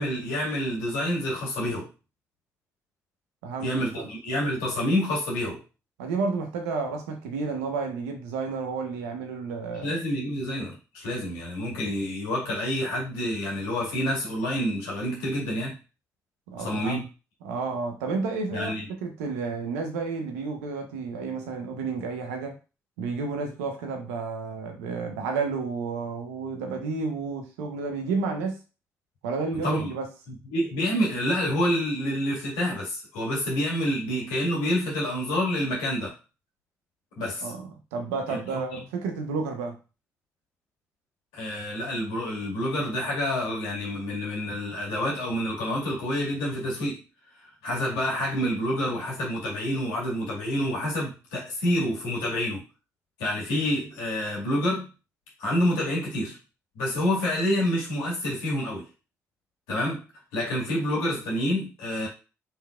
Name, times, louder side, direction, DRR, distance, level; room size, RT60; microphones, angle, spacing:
voice 1, 0.0-1.9 3.6-5.6 9.8-15.8 16.6-17.1 18.5-18.9 29.6-29.9 30.3-36.1 37.2-37.5 38.3-38.8 41.3-47.0 47.4-52.6 53.2-54.9 55.4-56.4 56.8-58.9 59.7-60.0 60.3-62.1, equal, 85° left, 1.8 m, -28 dB
voice 2, 3.4-4.1 6.0-10.0 16.5-17.0 17.4-18.8 19.0-22.6 23.0-28.6 29.2-30.1 37.4-39.8, right 4 dB, 85° right, 0.8 m, -31 dB
4.6 x 3.4 x 2.3 m
hypercardioid pair, 45°, 8 cm